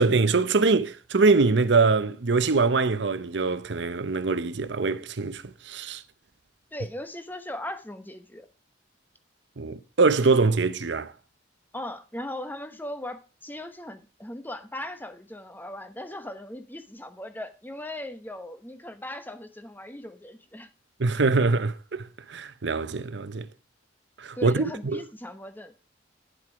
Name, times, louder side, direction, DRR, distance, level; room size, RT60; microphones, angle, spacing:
voice 1, 0.0-6.0 9.6-11.1 21.0-23.5 24.2-24.6 24.9-25.0, right 3 dB, 65° right, 0.8 m, -23 dB
voice 2, 6.7-8.5 11.7-20.7 24.4-25.9, left 1 dB, 10° left, 1.0 m, -38 dB
10.0 x 7.6 x 4.9 m
head